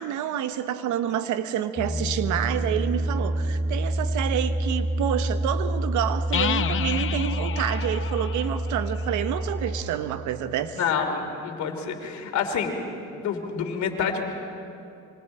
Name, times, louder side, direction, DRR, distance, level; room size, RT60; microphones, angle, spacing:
voice 1, 0.0-10.8, right 10 dB, 75° right, 11 dB, 1.1 m, -28 dB
Piano, 1.8-9.8, right 1 dB, 25° left, 3.1 m, -28 dB
sound 1, 6.3-10.0, left 10 dB, 45° left, 0.7 m, -31 dB
voice 2, 10.7-12.8 13.1-14.2, left 6 dB, 70° left, 4 dB, 2.9 m, -28 dB
26.0 x 24.0 x 4.4 m, 2.7 s
supercardioid pair, 80°, 30 cm